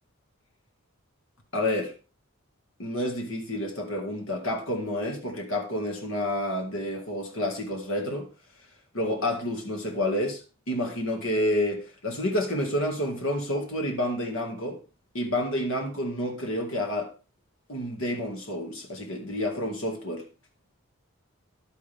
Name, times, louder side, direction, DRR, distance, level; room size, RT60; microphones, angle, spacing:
voice 1, 1.5-1.9 2.8-8.3 8.9-10.4 10.7-14.8 15.1-17.1 17.7-20.2, left 1 dB, 75° left, 2.1 m, -29 dB
11.0 x 9.7 x 3.5 m
head